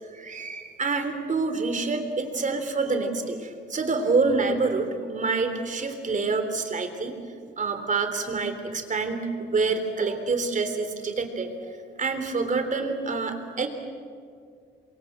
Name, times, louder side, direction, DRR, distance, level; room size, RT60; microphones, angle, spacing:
voice 1, 0.1-7.2 7.6-11.7 12.0-13.7, right 4 dB, 40° right, 7 dB, 3.5 m, -27 dB
27.5 x 23.5 x 7.7 m, 2.2 s
cardioid pair, 90°, 20 cm